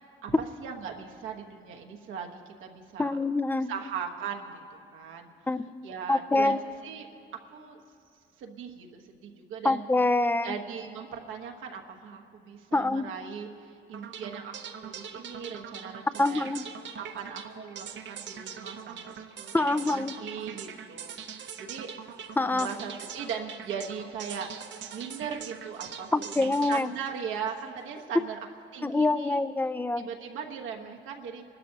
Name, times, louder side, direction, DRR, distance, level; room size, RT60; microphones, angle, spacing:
voice 1, 0.2-3.2 3.7-4.6 4.9-5.3 5.8-6.6 6.8-7.1 7.3-7.8 8.4-9.8 10.4-14.6 14.8-16.6 17.0-21.9 22.5-28.4 28.7-29.4 30.0-31.4, right 7 dB, 85° right, 1 dB, 1.3 m, -39 dB
voice 2, 3.0-3.7 5.5-5.7 6.1-6.6 9.6-10.5 12.7-13.1 16.2-16.7 19.5-20.2 22.4-22.7 26.1-26.9 28.8-30.1, left 2 dB, 10° left, 14 dB, 0.4 m, -25 dB
sound 1, 13.9-28.0, right 7 dB, 65° right, 0.8 m, -42 dB
27.0 x 12.5 x 2.9 m, 2.6 s
cardioid pair, 90°, 20 cm